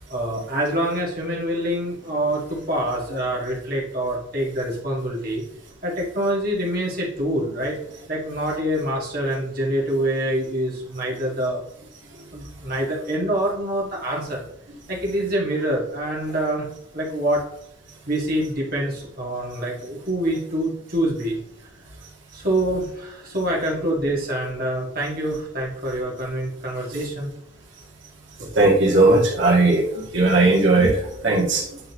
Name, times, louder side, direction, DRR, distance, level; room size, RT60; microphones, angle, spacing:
voice 1, 0.1-5.4 5.8-7.7 8.1-11.6 12.3-14.4 14.9-16.7 16.9-17.4 18.1-21.4 22.3-27.3, right 1 dB, 45° right, -4 dB, 2.0 m, -25 dB
voice 2, 28.4-31.8, right 2 dB, 65° right, -3 dB, 1.8 m, -18 dB
8.8 x 3.9 x 3.1 m, 0.79 s
head